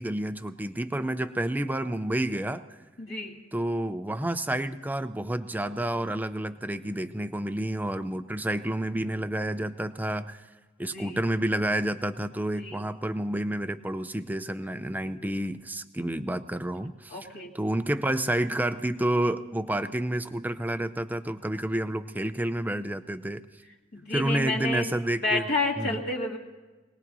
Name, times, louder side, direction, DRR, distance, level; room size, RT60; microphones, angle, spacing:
voice 1, 0.0-2.6 3.5-10.4 10.8-17.2 17.5-23.4 24.1-25.5 25.8-26.0, right 1 dB, 10° right, 11 dB, 0.5 m, -29 dB
voice 2, 3.0-3.4 10.8-11.2 12.6-12.8 17.1-17.6 23.9-24.9 25.2-26.4, left 2 dB, 60° left, -2 dB, 2.2 m, -30 dB
25.5 x 19.0 x 2.7 m, 1.2 s
head